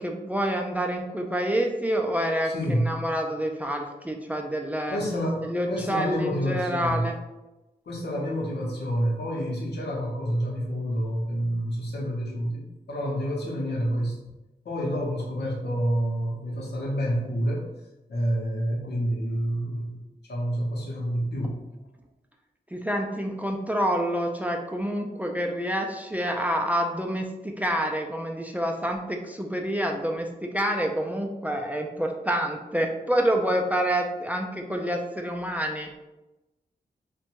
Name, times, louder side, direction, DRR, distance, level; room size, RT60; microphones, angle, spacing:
voice 1, 0.0-5.0 5.5-7.2 22.7-35.9, equal, 10° right, 2 dB, 0.3 m, -27 dB
voice 2, 2.4-3.0 4.9-7.1 7.9-14.3 14.6-17.7 18.1-20.0 20.3-21.6, equal, 80° left, -3 dB, 0.7 m, -28 dB
2.6 x 2.1 x 2.9 m, 1.0 s
cardioid pair, 60°, 17 cm